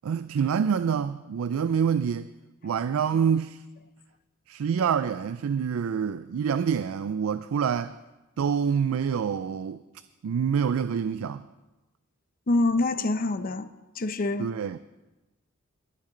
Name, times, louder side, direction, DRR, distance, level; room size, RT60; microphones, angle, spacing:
voice 1, 0.0-2.3 2.6-3.6 4.5-8.0 8.4-9.8 10.2-11.4 14.4-14.8, right 7 dB, 90° right, 0.4 m, -26 dB
voice 2, 12.5-13.7 14.0-14.5, left 2 dB, 45° left, 0.6 m, -25 dB
21.5 x 7.4 x 3.8 m
head